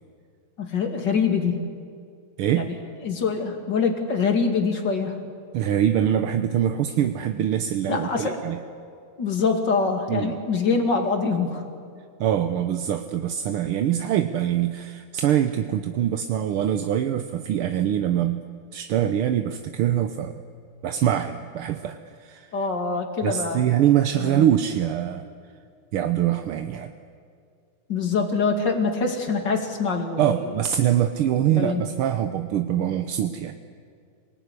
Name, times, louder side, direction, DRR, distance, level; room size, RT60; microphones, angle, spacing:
voice 1, 0.6-1.7 2.6-2.8 3.0-5.2 7.9-8.4 9.2-11.6 22.5-23.6 24.2-24.4 27.9-30.5 31.5-31.8, left 4 dB, 55° left, 4 dB, 3.1 m, -24 dB
voice 2, 2.4-2.7 5.5-8.6 10.1-10.4 12.2-18.4 18.7-20.4 20.8-22.7 23.2-25.3 25.9-26.9 30.2-33.6, right 10 dB, 80° right, 8 dB, 1.8 m, -24 dB
26.5 x 19.5 x 9.7 m, 2.3 s
omnidirectional pair, 2.4 m